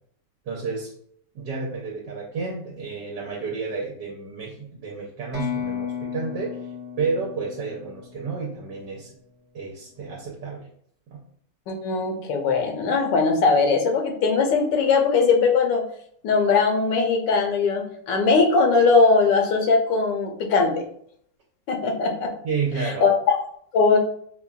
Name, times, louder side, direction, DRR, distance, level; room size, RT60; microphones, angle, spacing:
voice 1, 0.4-0.9 1.3-6.6 7.0-9.1 9.5-10.7 11.1-11.2 22.4-23.1, right 4 dB, 75° right, -3 dB, 1.3 m, -31 dB
sound 1, 5.3-9.1, left 8 dB, 5° right, 1.0 m, -34 dB
voice 2, 11.7-15.8 16.2-20.8 21.7-22.3 22.8-23.4 23.7-24.0, left 4 dB, 85° left, 3 dB, 1.4 m, -20 dB
5.5 x 2.3 x 2.4 m, 0.65 s
omnidirectional pair, 1.9 m